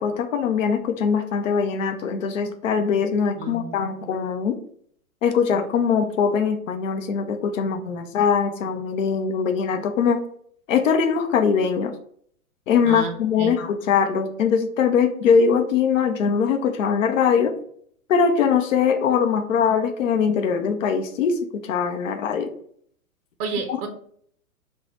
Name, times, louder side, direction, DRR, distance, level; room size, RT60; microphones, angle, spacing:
voice 1, 0.0-4.6 5.2-10.2 10.7-11.9 12.7-17.5 18.1-22.5 23.7-23.8, left 6 dB, 60° left, 6 dB, 0.7 m, -22 dB
voice 2, 3.4-3.8 12.8-13.6 23.4-23.9, right 4 dB, 40° right, 6 dB, 0.7 m, -31 dB
6.0 x 2.3 x 3.0 m, 0.62 s
figure-of-eight pair, 110°, 44 cm